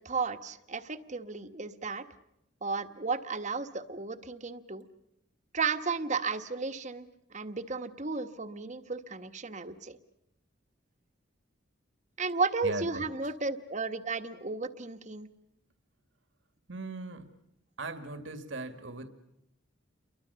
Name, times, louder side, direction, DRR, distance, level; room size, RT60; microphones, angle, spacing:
voice 1, 0.0-2.0 2.6-4.8 5.5-10.0 12.2-15.3, right 4 dB, 35° right, 9 dB, 1.4 m, -34 dB
voice 2, 12.6-13.1 16.7-17.3 17.8-19.1, right 3 dB, 75° right, 9 dB, 2.2 m, -39 dB
29.5 x 23.0 x 7.0 m, 0.84 s
head